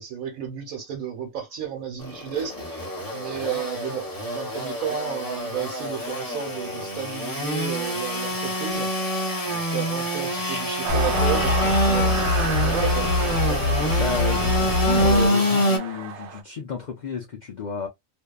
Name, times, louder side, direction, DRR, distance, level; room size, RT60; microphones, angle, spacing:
voice 1, 0.0-2.9 3.1-13.6, right 8 dB, 90° right, 1.2 m, -33 dB
Engine / Sawing, 2.0-15.8, equal, 20° left, 0.6 m, -26 dB
sound 1, 10.8-16.4, right 7 dB, 65° right, 0.8 m, -32 dB
sound 2, 10.9-15.3, left 4 dB, 55° left, 0.8 m, -24 dB
voice 2, 13.9-17.9, left 5 dB, 70° left, 0.4 m, -31 dB
2.6 x 2.2 x 2.2 m
omnidirectional pair, 1.4 m